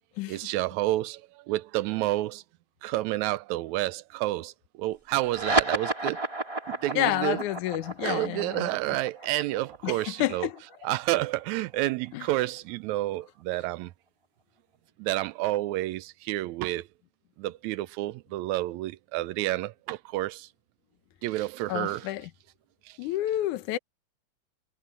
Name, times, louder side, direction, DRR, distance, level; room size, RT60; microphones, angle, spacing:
voice 1, 0.3-1.2 1.5-2.4 2.8-4.5 4.8-6.2 6.7-7.4 8.0-10.5 10.8-13.9 15.0-16.8 17.4-20.5 21.2-22.1, right 17 dB, 80° right, 1.8 m, -29 dB
sound 1, 5.2-12.1, right 2 dB, 10° right, 1.9 m, -32 dB
voice 2, 7.0-8.7 9.8-10.6 12.1-12.3 21.7-22.3 23.0-23.8, left 15 dB, 80° left, 2.4 m, -29 dB
omnidirectional pair, 3.5 m